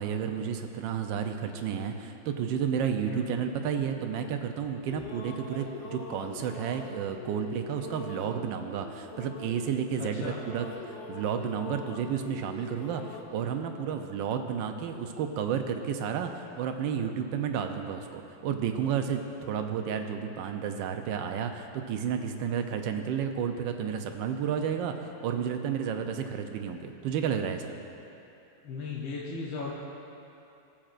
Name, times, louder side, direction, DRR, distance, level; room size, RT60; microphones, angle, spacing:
voice 1, 0.0-24.9 25.2-27.8, right 7 dB, 75° right, 6 dB, 1.2 m, -31 dB
voice 2, 3.0-3.6 10.0-10.4 20.1-20.3 26.1-26.2 28.6-29.7, left 4 dB, 75° left, -4 dB, 1.6 m, -37 dB
sound 1, 4.6-10.0 10.3-13.2, left 3 dB, 50° left, 0.9 m, -43 dB
16.5 x 7.3 x 2.5 m, 2.8 s
omnidirectional pair, 2.2 m